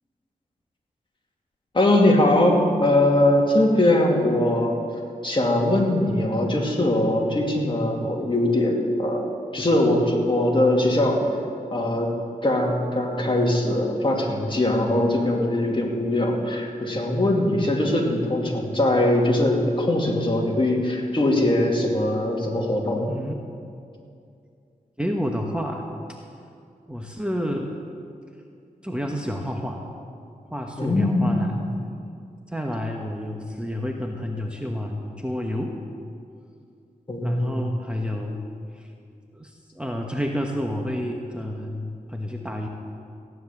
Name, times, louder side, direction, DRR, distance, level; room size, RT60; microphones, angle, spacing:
voice 1, 1.7-4.8 5.2-11.2 11.7-12.1 12.4-23.1 30.8-31.4 37.1-37.6, left 1 dB, 35° left, 0 dB, 2.6 m, -21 dB
voice 2, 25.0-25.9 26.9-27.7 28.8-29.9 30.5-31.6 32.5-35.7 37.2-38.4 38.7-38.8 39.3-42.7, equal, 5° right, 1 dB, 1.2 m, -29 dB
15.5 x 10.0 x 7.3 m, 2.4 s
wide cardioid pair, 75°, 15 cm